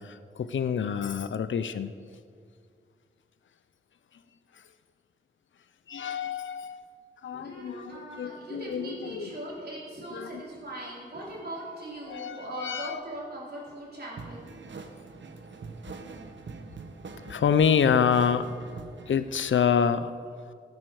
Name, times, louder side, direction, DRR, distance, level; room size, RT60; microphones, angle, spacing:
voice 1, 0.0-1.9 5.9-6.8 7.2-9.3 10.1-10.4 12.1-13.0 17.3-18.5 19.1-20.1, left 7 dB, 85° left, 12 dB, 0.6 m, -27 dB
voice 2, 7.3-14.5, right 1 dB, 55° right, -5 dB, 4.3 m, -40 dB
sound 1, 14.2-19.2, right 4 dB, 75° right, 1.0 m, -43 dB
17.0 x 9.5 x 4.9 m, 2.2 s
wide cardioid pair, 70°, 19 cm